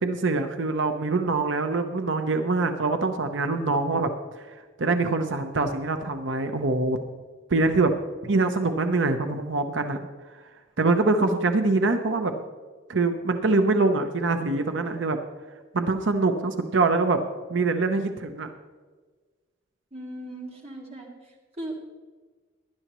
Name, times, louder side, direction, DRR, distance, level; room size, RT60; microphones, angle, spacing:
voice 1, 0.0-4.1 4.4-4.5 4.8-7.0 7.5-7.9 8.2-10.0 10.8-12.3 12.9-15.2 15.7-17.2 17.5-18.5, right 3 dB, 75° right, 7 dB, 0.8 m, -24 dB
voice 2, 19.9-21.7, right 1 dB, 30° right, -1 dB, 2.1 m, -38 dB
18.0 x 11.0 x 3.1 m, 1.4 s
head